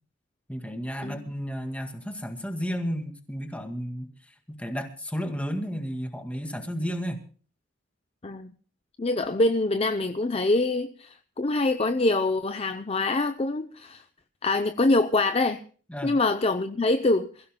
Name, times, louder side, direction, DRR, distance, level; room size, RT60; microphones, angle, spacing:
voice 1, 0.5-4.1 4.5-7.2 15.9-16.2, equal, 5° left, 1.9 m, -32 dB
voice 2, 9.0-14.0 14.4-15.6 16.0-17.3, left 2 dB, 30° left, 0.6 m, -25 dB
27.5 x 16.0 x 2.2 m
head